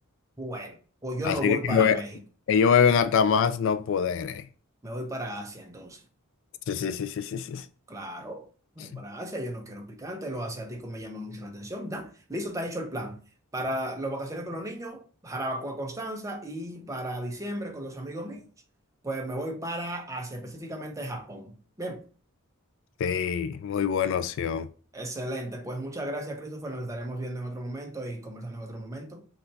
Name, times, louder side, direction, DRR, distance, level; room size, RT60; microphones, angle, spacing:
voice 1, 0.4-2.2 4.8-6.0 7.9-8.5 8.8-13.2 13.5-18.4 19.0-22.0 24.9-29.3, right 1 dB, 15° right, 0.6 m, -35 dB
voice 2, 1.2-2.0 2.5-4.5 6.7-7.7 8.8-9.0 23.0-24.7, left 7 dB, 55° left, 0.3 m, -24 dB
5.5 x 2.3 x 4.0 m
head